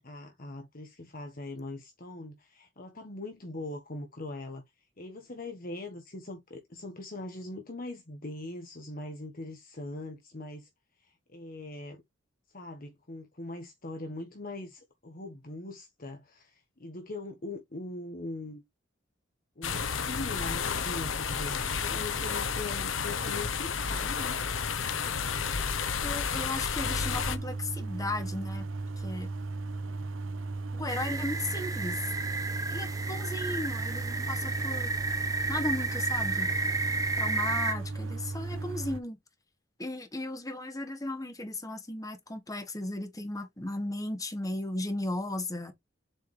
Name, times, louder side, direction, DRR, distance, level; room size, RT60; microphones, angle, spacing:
voice 1, 0.0-4.6 5.0-10.7 11.0-12.0 12.5-18.6 19.6-24.4, left 2 dB, 45° left, 1.3 m, -41 dB
sound 1, 19.6-27.4, left 6 dB, 85° left, 1.0 m, -31 dB
voice 2, 26.0-28.7 29.0-29.3 30.7-32.1 32.7-34.9 35.5-36.5 37.2-39.2 39.8-45.7, left 2 dB, 20° left, 1.4 m, -36 dB
sound 2, 26.8-39.0, right 3 dB, 85° right, 0.8 m, -36 dB
sound 3, 30.9-37.7, right 3 dB, 20° right, 1.0 m, -32 dB
7.4 x 4.7 x 3.3 m
head